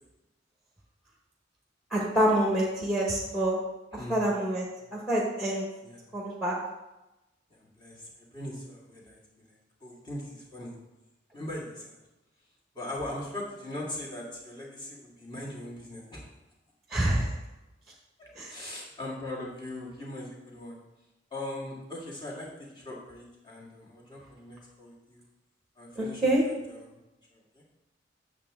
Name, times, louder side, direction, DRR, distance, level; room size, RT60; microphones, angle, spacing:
voice 1, 1.9-3.6 4.1-4.7 4.9-5.6 6.1-6.6 16.9-17.3 18.3-18.5 26.0-26.4, right 1 dB, ahead, -3 dB, 1.2 m, -26 dB
voice 2, 3.9-4.2 4.8-4.9 5.8-6.1 7.5-9.5 9.8-10.8 11.3-12.0 12.7-16.2 18.2-20.8 21.3-25.2 25.8-27.0 27.3-27.6, left 1 dB, 25° left, -4 dB, 2.0 m, -40 dB
8.6 x 6.8 x 3.6 m, 0.99 s
head